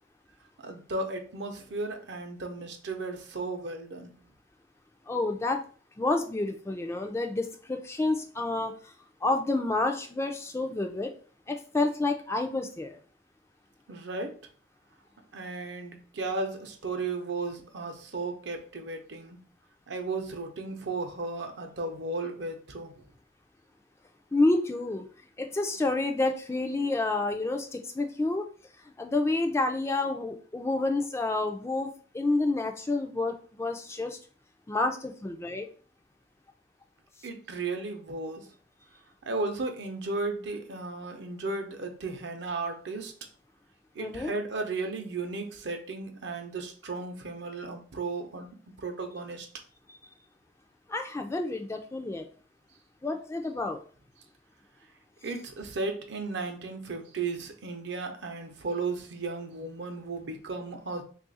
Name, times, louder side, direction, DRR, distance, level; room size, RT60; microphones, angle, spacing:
voice 1, 0.6-4.1 13.9-14.4 15.3-19.4 19.9-22.9 37.2-38.5 39.2-43.1 43.9-49.5 55.2-61.0, right 3 dB, 65° right, 5 dB, 0.6 m, -35 dB
voice 2, 5.1-5.6 6.0-8.9 9.2-11.1 11.5-13.0 24.3-25.1 25.4-28.5 29.0-34.2 34.7-35.7 44.0-44.3 50.9-52.3 53.0-53.8, left 2 dB, 15° left, 5 dB, 0.3 m, -29 dB
3.1 x 2.4 x 3.9 m, 0.40 s
head